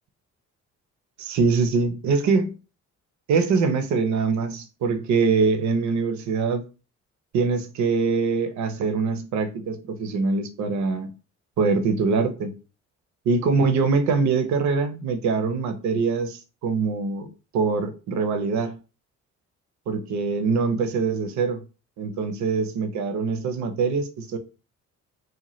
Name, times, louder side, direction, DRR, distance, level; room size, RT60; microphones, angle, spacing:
voice 1, 1.2-2.5 3.3-6.6 7.3-11.1 11.6-12.5 13.3-17.3 17.5-18.8 19.9-21.6 22.0-24.4, right 4 dB, 70° right, 0.6 m, -23 dB
2.8 x 2.1 x 3.0 m
cardioid pair, 90°, 30 cm